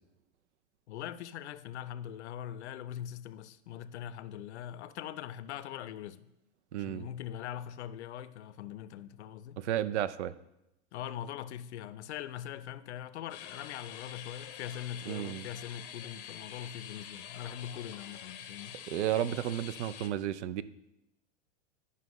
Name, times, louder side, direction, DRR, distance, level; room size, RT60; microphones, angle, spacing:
voice 1, 0.9-6.3 6.8-9.6 10.9-18.8, left 10 dB, 75° left, 0.6 m, -42 dB
voice 2, 6.7-7.1 9.6-10.3 15.1-15.5 18.9-20.6, right 11 dB, 80° right, 0.5 m, -32 dB
sound 1, 13.3-20.1, left 9 dB, 35° left, 0.7 m, -46 dB
11.0 x 5.6 x 3.1 m
supercardioid pair, 170°, 35 cm